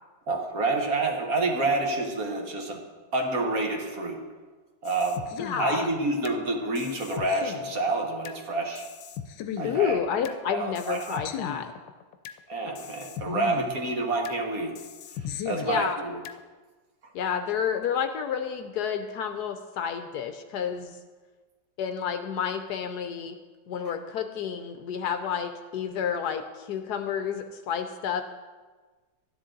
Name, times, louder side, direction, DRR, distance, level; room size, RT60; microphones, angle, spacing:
voice 1, 0.3-2.8 3.1-4.2 4.8-5.2 5.6-8.8 9.6-10.0 10.5-11.2 12.5-14.7 15.4-16.2, right 2 dB, 55° right, 2 dB, 1.7 m, -28 dB
sound 1, 4.9-6.4 6.8-8.4 8.8-10.4 10.8-12.4 12.8-14.4 14.8-16.4, left 8 dB, 90° left, 1.3 m, -37 dB
voice 2, 5.3-5.9 9.6-11.7 15.6-16.0 17.1-21.0 21.8-23.4 23.7-28.2, left 8 dB, 70° left, 8 dB, 1.1 m, -30 dB
12.5 x 10.0 x 3.9 m, 1.4 s
omnidirectional pair, 1.9 m